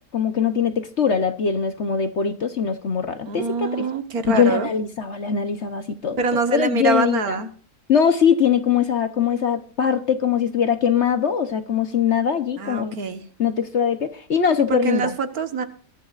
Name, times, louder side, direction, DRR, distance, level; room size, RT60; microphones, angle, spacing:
voice 1, 0.1-3.8 4.3-7.4 7.9-12.9 13.4-15.1, left 7 dB, 50° left, 10 dB, 1.0 m, -22 dB
voice 2, 3.3-4.7 6.2-7.5 12.6-13.2 14.7-15.6, right 4 dB, 60° right, 9 dB, 1.7 m, -24 dB
22.0 x 13.0 x 2.5 m, 0.41 s
omnidirectional pair, 1.8 m